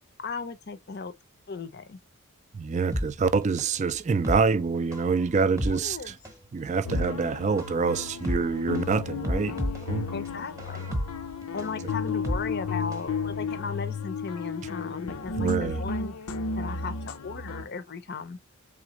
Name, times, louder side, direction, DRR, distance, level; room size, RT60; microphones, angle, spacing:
voice 1, 0.2-1.1 1.5-2.0 5.6-6.1 10.1-11.0 11.5-16.1 16.6-18.4, left 4 dB, 45° left, 0.6 m, -36 dB
voice 2, 2.5-6.1 6.5-10.1 15.4-15.8, right 5 dB, 30° right, 0.3 m, -26 dB
sound 1, 2.9-13.1 13.4-13.5, equal, 15° right, 0.8 m, -33 dB
sound 2, 6.8-17.6, left 4 dB, 85° left, 0.6 m, -33 dB
3.9 x 3.4 x 3.0 m
head